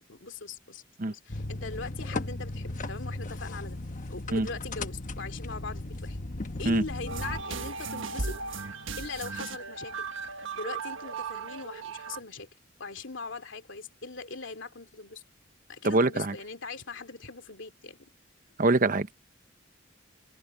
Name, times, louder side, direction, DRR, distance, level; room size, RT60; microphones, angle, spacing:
voice 1, 0.0-0.8 1.1-3.8 4.1-6.2 6.6-8.7 9.0-10.1 10.5-12.5 12.8-15.2 15.7-18.1, left 4 dB, 70° left, 2.8 m, -40 dB
sound 1, 1.3-7.4, left 2 dB, 45° left, 1.1 m, -36 dB
sound 2, 7.1-12.2, right 4 dB, 85° right, 1.5 m, -36 dB
voice 2, 15.8-16.3 18.6-19.1, right 2 dB, 45° right, 1.0 m, -24 dB
head